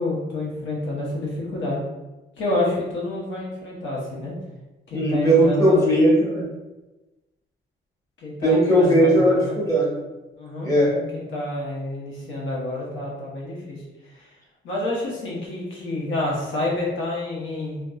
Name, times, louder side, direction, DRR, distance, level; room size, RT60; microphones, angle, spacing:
voice 1, 0.0-1.8 2.4-4.3 4.9-5.8 8.2-9.6 10.4-13.8 14.6-17.8, left 2 dB, 70° left, -4 dB, 0.9 m, -28 dB
voice 2, 4.9-6.5 8.4-10.0 10.6-10.9, right 1 dB, 15° left, -6 dB, 1.1 m, -18 dB
2.6 x 2.2 x 2.3 m, 1.1 s
cardioid pair, 90°, 20 cm